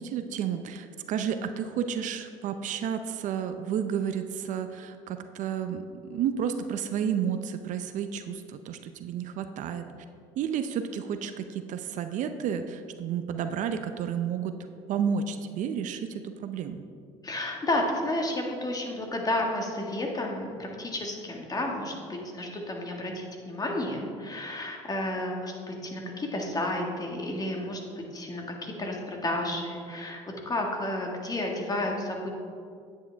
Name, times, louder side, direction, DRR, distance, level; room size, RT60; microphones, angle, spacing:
voice 1, 0.0-9.8 10.4-16.8, right 8 dB, 60° right, 9 dB, 0.6 m, -31 dB
voice 2, 17.2-27.8 28.1-30.2 30.5-32.3, left 1 dB, 25° left, 1 dB, 1.7 m, -31 dB
9.4 x 8.4 x 3.4 m, 2.3 s
supercardioid pair, 75°, 15 cm